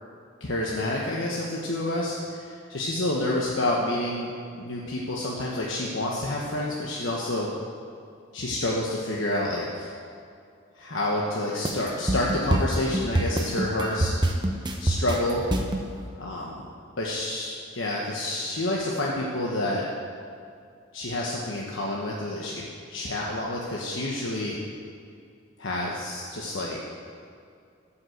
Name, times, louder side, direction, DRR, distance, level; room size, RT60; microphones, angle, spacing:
voice 1, 0.4-2.2 2.7-4.3 4.6-7.5 8.3-9.9 10.7-14.1 14.8-15.4 16.2-16.6 17.0-19.9 20.9-24.6 25.6-26.8, left 1 dB, 70° left, -3 dB, 1.2 m, -28 dB
sound 1, 11.6-15.9, right 1 dB, 20° right, 0.8 m, -25 dB
13.0 x 5.9 x 7.8 m, 2.4 s
head